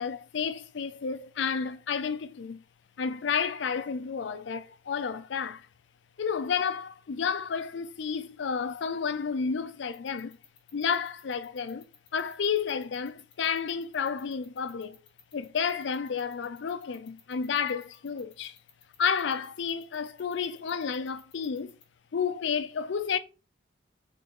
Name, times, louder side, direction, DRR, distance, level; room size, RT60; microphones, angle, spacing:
voice 1, 0.0-2.6 3.0-5.7 6.2-10.4 10.7-11.8 12.1-15.0 15.3-18.6 19.0-21.8 22.1-23.2, left 6 dB, 70° left, 0.4 m, -31 dB
sound 1, 9.9-21.8, left 9 dB, 30° left, 1.0 m, -56 dB
3.8 x 3.8 x 3.6 m
head